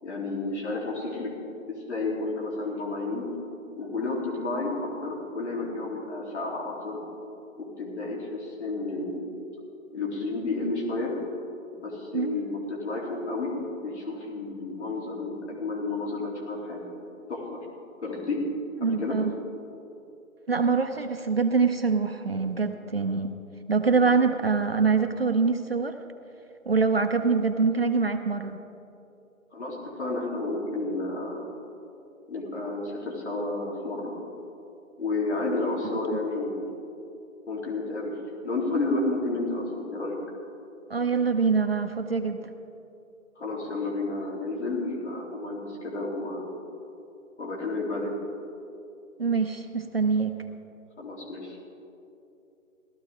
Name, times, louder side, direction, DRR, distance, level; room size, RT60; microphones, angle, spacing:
voice 1, 0.0-1.3 1.7-3.3 3.8-7.0 7.6-9.3 9.9-11.1 11.7-16.8 17.3-17.6 18.0-18.4 18.8-19.2 29.5-31.5 32.3-34.1 35.0-36.7 37.5-38.1 38.4-40.2 43.3-46.4 47.4-48.1 51.0-51.8, left 2 dB, 55° left, -3 dB, 3.5 m, -31 dB
voice 2, 18.8-19.3 20.5-23.4 23.7-26.0 26.7-28.6 40.9-42.5 49.2-50.4, right 5 dB, 45° right, 6 dB, 0.6 m, -24 dB
17.0 x 13.5 x 3.7 m, 2.7 s
figure-of-eight pair, 165°, 42 cm